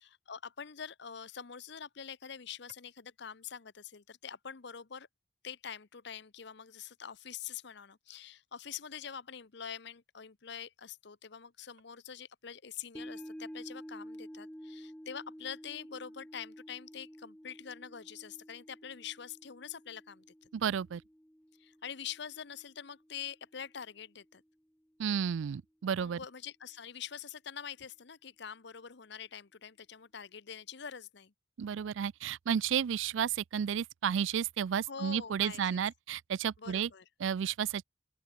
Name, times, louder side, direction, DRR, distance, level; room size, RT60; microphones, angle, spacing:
voice 1, 0.0-5.1 5.4-20.5 21.6-24.4 26.0-31.3 34.9-35.8 36.6-37.0, left 7 dB, 60° left, 0.9 m, -45 dB
sound 1, 13.0-23.3 23.7-23.8, equal, 5° left, 2.6 m, -50 dB
voice 2, 20.5-21.0 25.0-26.2 31.6-36.9 37.2-37.8, right 8 dB, 75° right, 0.4 m, -32 dB
open air
head